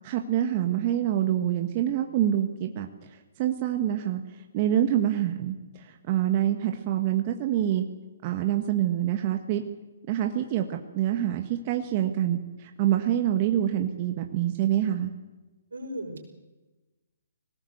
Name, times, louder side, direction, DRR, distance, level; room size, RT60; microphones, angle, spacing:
voice 1, 0.0-2.9 3.4-4.2 4.5-7.8 8.2-9.6 10.1-15.1, right 11 dB, 40° right, 5 dB, 1.6 m, -26 dB
voice 2, 15.7-16.2, equal, 90° right, 1 dB, 6.1 m, -36 dB
21.5 x 18.5 x 8.1 m, 1.1 s
hypercardioid pair, 140°, 0 cm